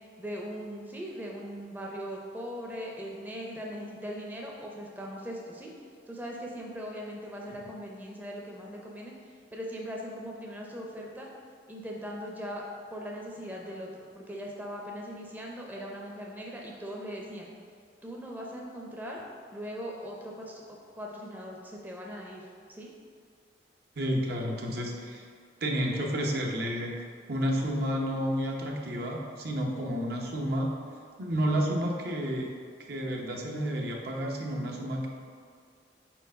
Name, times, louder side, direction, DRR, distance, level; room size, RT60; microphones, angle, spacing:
voice 1, 0.2-5.7 6.1-11.3 11.7-12.6 12.9-13.9 14.2-17.5 18.0-19.2 19.5-20.6 21.0-22.5 22.8-22.9, equal, 10° right, -2 dB, 0.6 m, -40 dB
voice 2, 24.0-25.3 25.6-26.9 27.3-30.7 31.2-32.5 32.9-35.1, equal, 60° right, -1 dB, 0.8 m, -30 dB
4.6 x 4.2 x 5.1 m, 2.1 s
head